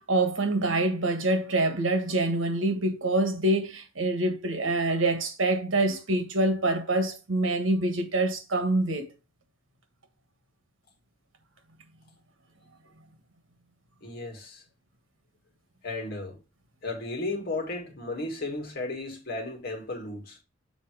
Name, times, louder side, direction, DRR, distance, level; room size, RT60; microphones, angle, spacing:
voice 1, 0.0-9.1, right 2 dB, 85° right, 1.5 m, -26 dB
voice 2, 14.0-14.6 15.8-16.4 16.8-20.4, left 2 dB, 55° left, 2.3 m, -34 dB
7.2 x 3.9 x 4.8 m
head